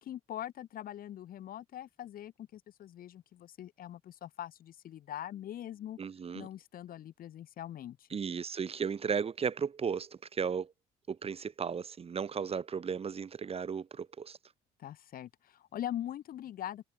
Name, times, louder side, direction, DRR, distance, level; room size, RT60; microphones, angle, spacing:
voice 1, 0.0-6.0 6.3-8.0 14.8-16.9, left 11 dB, 60° left, 2.2 m, -42 dB
voice 2, 6.0-6.5 8.1-10.7 11.1-14.4, right 6 dB, 35° right, 3.4 m, -35 dB
cardioid pair, 110°, 17 cm